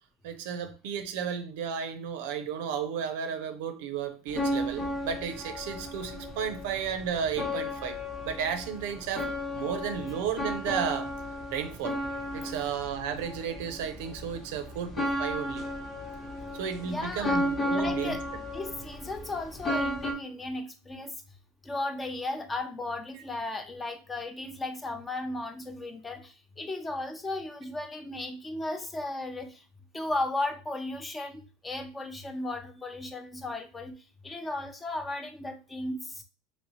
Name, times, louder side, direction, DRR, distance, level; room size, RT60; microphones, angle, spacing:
voice 1, 0.2-8.0 8.2-11.1 11.5-12.0 12.3-15.6 16.5-18.2, right 7 dB, 75° right, 0.5 m, -33 dB
sound 1, 4.3-20.1, left 1 dB, 40° left, 1.0 m, -34 dB
voice 2, 16.8-17.4 17.7-21.2 21.6-29.6 29.9-36.2, left 2 dB, 15° left, 0.5 m, -35 dB
3.1 x 2.7 x 3.0 m
supercardioid pair, 110°, 0 cm